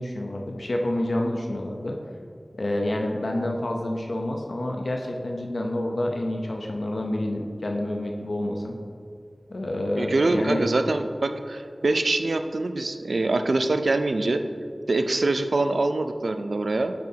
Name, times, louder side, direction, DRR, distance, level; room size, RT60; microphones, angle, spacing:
voice 1, 0.0-2.0 2.6-8.8 9.5-10.6, left 1 dB, 75° left, 1 dB, 0.7 m, -28 dB
voice 2, 10.0-14.4 14.9-16.9, right 2 dB, 85° right, 7 dB, 0.4 m, -24 dB
9.4 x 7.7 x 2.8 m, 2.4 s
wide cardioid pair, 60°, 0 cm